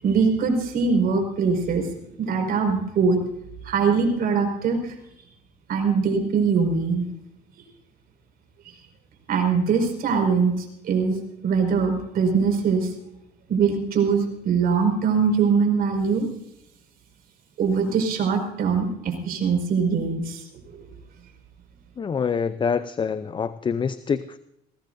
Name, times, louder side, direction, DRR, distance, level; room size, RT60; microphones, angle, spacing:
voice 1, 0.0-1.8 2.2-3.2 3.6-4.9 5.7-7.1 9.3-11.2 11.4-12.9 13.5-16.3 17.6-20.4, right 5 dB, 60° right, 4 dB, 5.2 m, -22 dB
voice 2, 22.0-24.4, left 6 dB, 30° left, 13 dB, 0.6 m, -26 dB
21.0 x 18.0 x 2.6 m, 0.80 s
cardioid pair, 110°, 17 cm